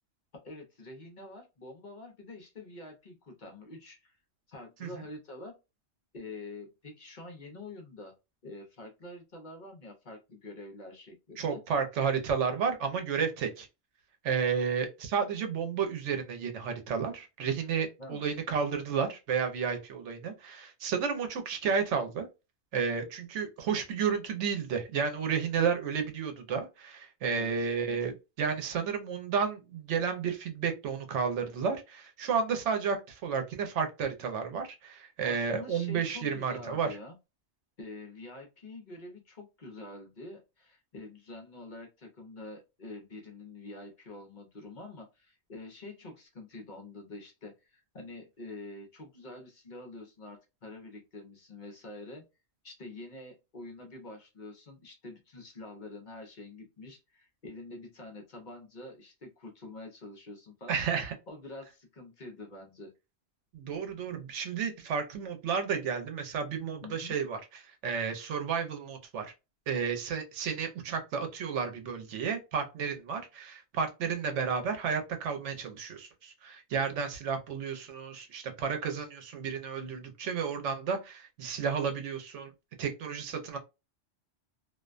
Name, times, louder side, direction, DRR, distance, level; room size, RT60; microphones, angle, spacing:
voice 1, 0.3-4.2 4.5-5.5 6.1-8.1 8.4-11.6 18.0-18.3 27.3-27.7 35.2-37.2 37.8-52.3 52.6-60.8 61.3-62.9 66.8-67.2, left 2 dB, 50° left, 2 dB, 0.7 m, -46 dB
voice 2, 11.4-13.7 14.2-22.3 22.7-36.9 60.7-61.1 63.5-67.4 67.7-69.3 69.7-82.5 82.8-83.6, right 6 dB, 85° right, 5 dB, 1.0 m, -32 dB
2.5 x 2.2 x 2.4 m, 0.26 s
omnidirectional pair, 1.2 m